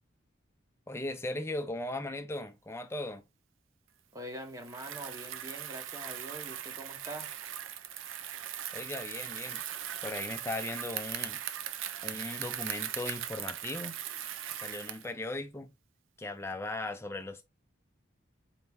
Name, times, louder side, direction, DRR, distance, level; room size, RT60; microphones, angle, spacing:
voice 1, 0.9-3.2 8.7-9.6 10.0-11.4 12.0-14.0 14.5-15.7 16.2-17.4, left 2 dB, 15° left, 0.5 m, -38 dB
voice 2, 4.1-7.3, right 1 dB, 15° right, 0.9 m, -44 dB
Bicycle, 4.6-15.1, right 10 dB, 85° right, 0.5 m, -39 dB
4.4 x 2.9 x 3.4 m
head